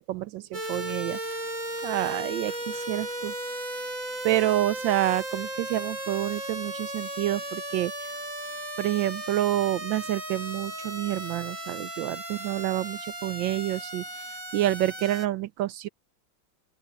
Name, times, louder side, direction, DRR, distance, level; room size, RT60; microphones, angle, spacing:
voice 1, 0.0-1.4 1.8-3.3 4.2-7.9 8.8-14.0 14.5-15.9, right 14 dB, 75° right, 1.2 m, -28 dB
sound 1, 0.5-15.3, right 1 dB, 40° right, 5.9 m, -35 dB
open air
omnidirectional pair, 2.2 m